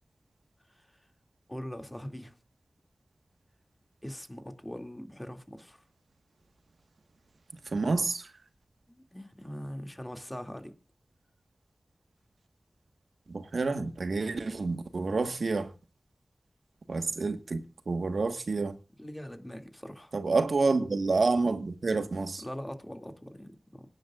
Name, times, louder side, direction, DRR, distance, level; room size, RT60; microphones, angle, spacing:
voice 1, 1.5-2.3 4.0-5.8 8.9-10.7 19.0-20.1 22.4-23.9, equal, 15° left, 2.4 m, -42 dB
voice 2, 7.7-8.3 13.3-15.7 16.9-18.8 20.1-22.4, right 3 dB, 80° right, 1.4 m, -28 dB
26.0 x 10.5 x 2.4 m
wide cardioid pair, 55°, 0 cm